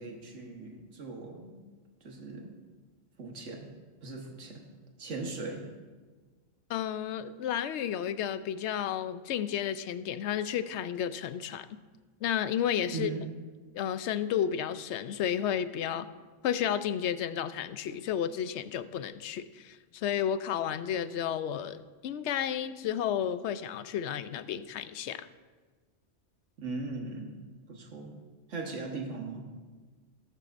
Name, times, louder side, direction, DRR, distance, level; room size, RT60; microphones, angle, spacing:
voice 1, 0.0-1.6 2.0-2.5 3.2-3.7 4.0-4.6 5.0-5.6 12.9-13.2 26.6-27.3 27.7-28.1 28.5-29.5, right 3 dB, 80° right, 1 dB, 1.6 m, -39 dB
voice 2, 6.7-11.7 12.2-13.1 13.7-16.1 16.4-25.3, left 9 dB, 70° left, 13 dB, 0.8 m, -32 dB
17.5 x 9.0 x 2.6 m, 1.4 s
omnidirectional pair, 1.2 m